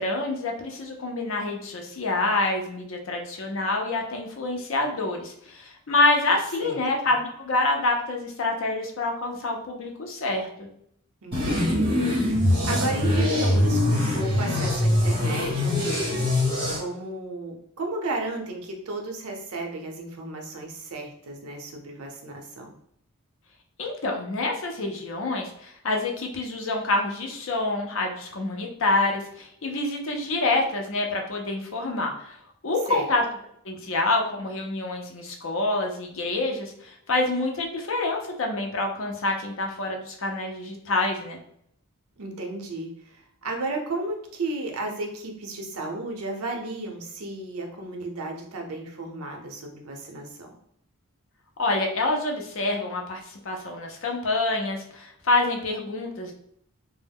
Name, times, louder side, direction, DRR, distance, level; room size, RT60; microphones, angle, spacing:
voice 1, 0.0-10.7 23.8-32.4 32.6-33.2 33.6-41.4 51.6-56.3, left 2 dB, 60° left, 2 dB, 0.5 m, -27 dB
voice 2, 11.2-11.9 12.2-16.3 16.8-22.7 32.9-33.1 42.2-50.5, right 2 dB, 80° right, 2 dB, 0.6 m, -34 dB
sound 1, 11.3-16.8, left 1 dB, 20° right, 1.0 m, -23 dB
2.2 x 2.0 x 3.4 m, 0.70 s
head